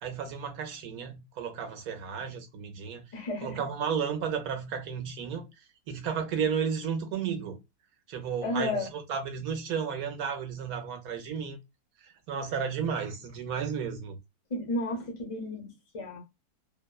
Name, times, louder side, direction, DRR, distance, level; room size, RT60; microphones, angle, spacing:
voice 1, 0.0-3.0 3.4-7.6 8.1-11.6 12.0-14.1, right 7 dB, 70° right, 1.1 m, -33 dB
voice 2, 3.1-3.6 8.4-8.9 14.5-16.2, left 1 dB, 40° left, 0.4 m, -33 dB
2.8 x 2.1 x 2.2 m
omnidirectional pair, 1.7 m